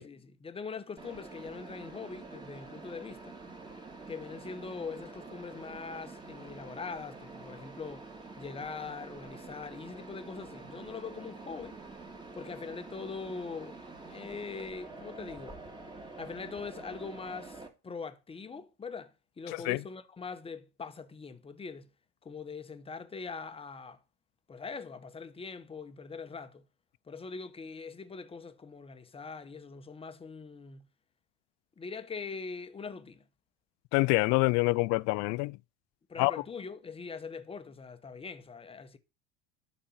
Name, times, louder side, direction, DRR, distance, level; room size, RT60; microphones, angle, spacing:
voice 1, 0.0-3.4 4.1-8.1 8.4-11.8 12.3-13.8 14.1-15.6 16.2-21.9 22.2-24.0 24.5-26.6 27.1-30.9 31.8-33.2 36.1-39.0, left 4 dB, 15° left, 1.0 m, -42 dB
Mechanisms, 1.0-17.7, right 3 dB, 15° right, 2.2 m, -47 dB
voice 2, 33.9-35.6 36.2-36.4, left 24 dB, 55° left, 0.4 m, -26 dB
11.5 x 4.3 x 5.6 m
supercardioid pair, 105°, 34 cm